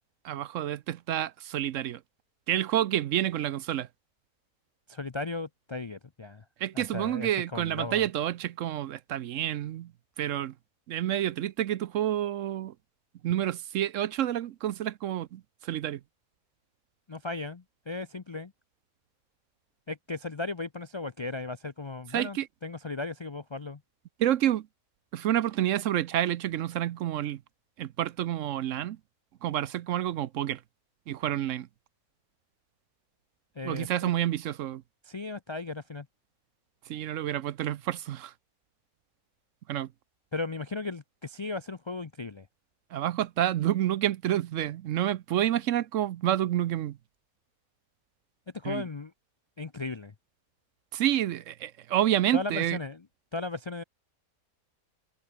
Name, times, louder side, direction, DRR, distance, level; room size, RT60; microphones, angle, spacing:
voice 1, 0.2-2.0 2.5-3.9 6.6-9.9 10.2-10.5 10.9-12.7 13.2-16.0 22.1-22.5 24.2-24.7 25.1-27.4 27.8-29.0 29.4-30.6 31.1-31.7 33.6-34.8 36.9-38.3 39.7-39.9 42.9-47.0 48.6-48.8 50.9-52.8, right 12 dB, 70° right, 0.9 m, -29 dB
voice 2, 4.9-6.4 6.7-8.1 17.1-18.5 19.9-23.8 33.6-33.9 35.0-36.1 40.3-42.5 48.5-49.1 49.6-50.1 52.3-53.0 53.3-53.8, left 3 dB, 45° left, 0.3 m, -36 dB
omnidirectional pair, 1.5 m